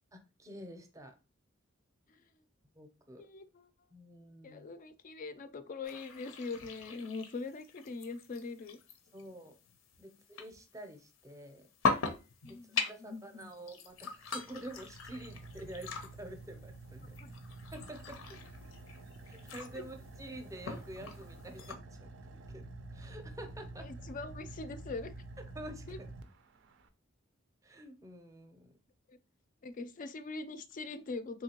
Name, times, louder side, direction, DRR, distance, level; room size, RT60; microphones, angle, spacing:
voice 1, 0.1-1.1 2.8-3.2 3.9-4.7 9.1-9.5 10.0-10.1 10.4-11.7 12.5-17.2 17.7-18.2 19.2-22.1 22.5-23.9 25.5-26.1 27.6-28.7, right 1 dB, 15° right, 0.5 m, -48 dB
voice 2, 3.2-3.7 4.4-8.8 10.0-10.2 12.4-13.5 17.2-17.3 23.8-25.1 25.9-26.0 29.1-29.2 29.6-31.4, left 3 dB, 40° left, 0.4 m, -42 dB
sound 1, 5.8-21.8, left 4 dB, 90° left, 0.6 m, -41 dB
Car / Idling, 13.9-26.9, right 2 dB, 65° right, 0.4 m, -49 dB
3.6 x 3.1 x 2.8 m
head